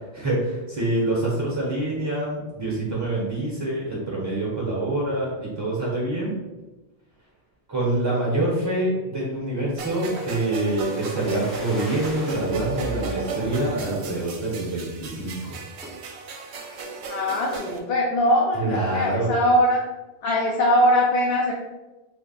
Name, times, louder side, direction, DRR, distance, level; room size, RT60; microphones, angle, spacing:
voice 1, 0.1-6.3 7.7-15.6 18.6-19.3, right 2 dB, 25° right, -6 dB, 0.7 m, -26 dB
sound 1, 9.8-13.1 13.6-14.3 14.7-14.8 15.0-15.3 15.8-16.1 16.6-17.3 17.6-17.7, equal, ahead, 0.3 m, -42 dB
sound 2, 9.8-17.8, right 4 dB, 75° right, 0.8 m, -34 dB
voice 2, 17.1-19.8 20.2-21.5, equal, 65° left, -3 dB, 0.8 m, -21 dB
3.3 x 2.1 x 3.8 m, 1.1 s
omnidirectional pair, 1.2 m